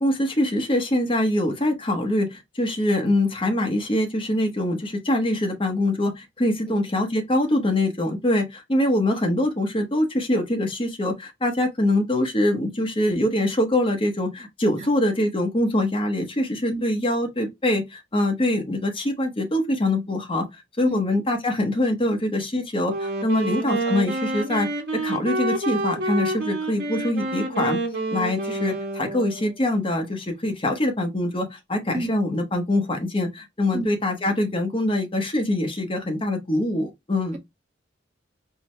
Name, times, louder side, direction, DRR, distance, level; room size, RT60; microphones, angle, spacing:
voice 1, 0.0-20.5 20.8-27.8 28.1-37.4, left 1 dB, 30° left, 0.8 m, -24 dB
voice 2, 6.6-6.8 14.8-14.9 16.7-16.8 20.8-21.0 23.3-23.5 31.9-32.1 33.7-33.9, right 2 dB, 35° right, 0.9 m, -30 dB
Wind instrument woodwind instrument, 22.8-29.6, right 2 dB, 55° right, 1.3 m, -28 dB
4.5 x 2.1 x 3.2 m
head